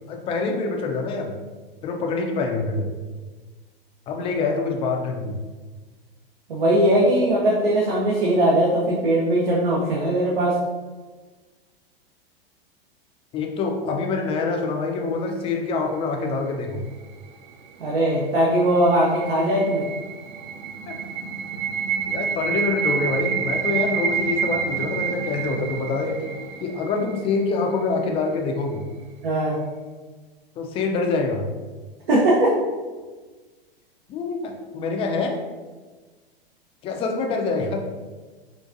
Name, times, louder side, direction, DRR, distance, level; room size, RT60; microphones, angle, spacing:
voice 1, 0.1-1.3 1.8-2.9 4.1-5.4 13.3-16.8 20.9-21.0 22.0-26.2 26.6-28.8 30.6-31.5 34.1-35.4 36.8-37.8, left 4 dB, 20° left, 2 dB, 0.3 m, -25 dB
voice 2, 6.5-10.6 17.8-19.8 29.2-29.6 32.1-32.5, right 1 dB, 75° right, -5 dB, 0.8 m, -20 dB
sound 1, 18.5-27.4, right 7 dB, 50° right, 0.4 m, -28 dB
3.9 x 2.5 x 2.5 m, 1.3 s
hypercardioid pair, 105°, 30 cm